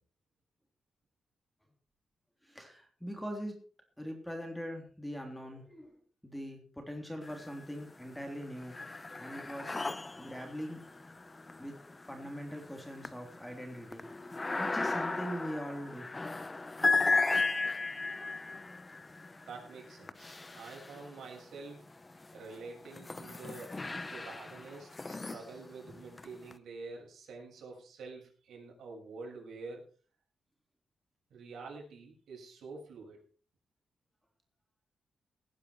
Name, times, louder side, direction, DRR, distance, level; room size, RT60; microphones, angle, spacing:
voice 1, 2.4-3.6 4.0-5.9 6.2-8.8 9.2-9.8 10.2-10.8 11.6-11.8 12.1-16.1, equal, 5° left, 3 dB, 3.5 m, -42 dB
sound 1, 7.2-7.9 8.2-21.4 22.1-26.5, left 3 dB, 20° left, 0.7 m, -36 dB
voice 2, 19.5-21.9 22.3-23.8 24.1-29.8 31.3-33.2, right 4 dB, 80° right, 0 dB, 7.0 m, -47 dB
18.0 x 9.8 x 4.7 m, 0.42 s
wide cardioid pair, 125°, 0 cm